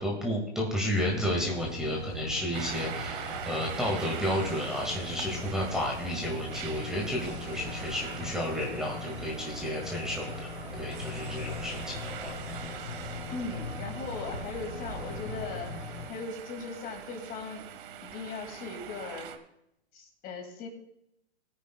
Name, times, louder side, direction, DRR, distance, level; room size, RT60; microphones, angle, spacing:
voice 1, 0.0-10.5 10.8-12.3, left 1 dB, ahead, -3 dB, 1.8 m, -32 dB
sound 1, 1.0-16.1, left 2 dB, 85° left, 4.6 m, -40 dB
sound 2, 2.5-19.4, right 9 dB, 50° right, 1.2 m, -43 dB
voice 2, 13.3-15.7 16.1-17.6 18.0-19.3 19.9-20.7, left 4 dB, 25° left, 5 dB, 2.2 m, -38 dB
20.0 x 9.3 x 2.3 m, 0.79 s
hypercardioid pair, 130°, 35 cm